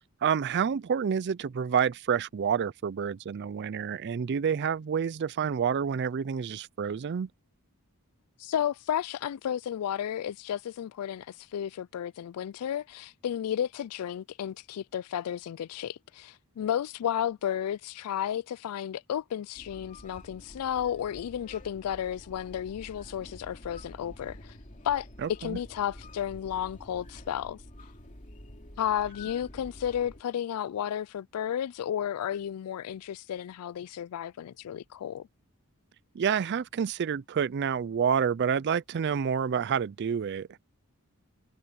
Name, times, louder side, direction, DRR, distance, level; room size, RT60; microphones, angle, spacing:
voice 1, 0.2-7.3 25.2-25.6 36.1-40.5, right 7 dB, 50° right, 0.4 m, -28 dB
voice 2, 8.4-24.5 24.8-27.6 28.8-35.3, left 9 dB, 85° left, 0.3 m, -33 dB
sound 1, 19.6-30.2, left 1 dB, 35° left, 2.8 m, -48 dB
head